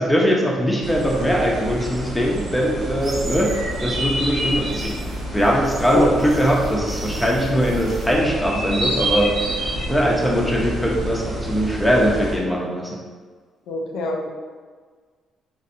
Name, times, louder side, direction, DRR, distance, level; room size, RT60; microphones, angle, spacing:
voice 1, 0.0-3.5 3.8-5.0 5.3-9.4 9.9-13.0, equal, 5° left, -2 dB, 0.7 m, -21 dB
sound 1, 0.8-12.4, right 1 dB, 80° right, 1.2 m, -28 dB
sound 2, 3.0-3.7 4.5-8.1, right 2 dB, 30° right, 0.6 m, -39 dB
voice 2, 13.7-14.3, left 2 dB, 90° left, 1 dB, 0.4 m, -24 dB
3.9 x 2.6 x 2.6 m, 1.6 s
cardioid pair, 90°, 0 cm